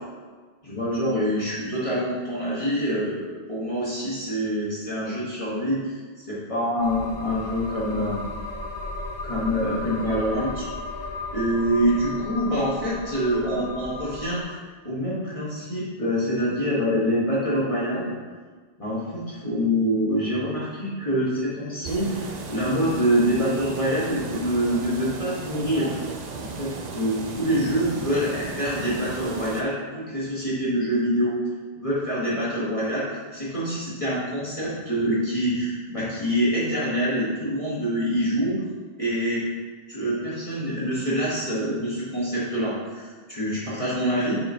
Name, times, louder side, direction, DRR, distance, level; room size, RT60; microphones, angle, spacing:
voice 1, 0.6-6.0 6.3-8.2 9.2-10.7 11.3-14.6 14.8-18.2 18.8-26.0 26.4-26.7 26.9-31.3 31.7-33.1 33.3-38.6 39.0-39.4 39.9-44.4, equal, 35° left, -8 dB, 1.4 m, -25 dB
sound 1, 6.8-14.4, left 2 dB, 50° left, 0.7 m, -35 dB
sound 2, 21.8-29.6, right 4 dB, 50° right, 0.6 m, -35 dB
6.3 x 3.7 x 4.3 m, 1.5 s
omnidirectional pair, 1.0 m